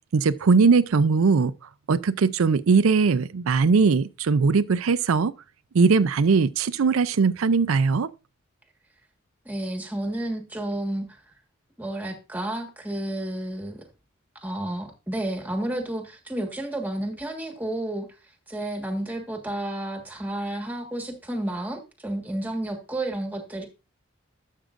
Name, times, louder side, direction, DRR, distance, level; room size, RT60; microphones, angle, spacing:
voice 1, 0.1-1.5 1.9-5.3 5.7-8.1, right 4 dB, 90° right, 0.5 m, -20 dB
voice 2, 9.4-11.1 11.8-13.8 14.4-18.1 18.5-23.7, right 1 dB, 10° right, 1.5 m, -31 dB
12.0 x 7.4 x 2.5 m
head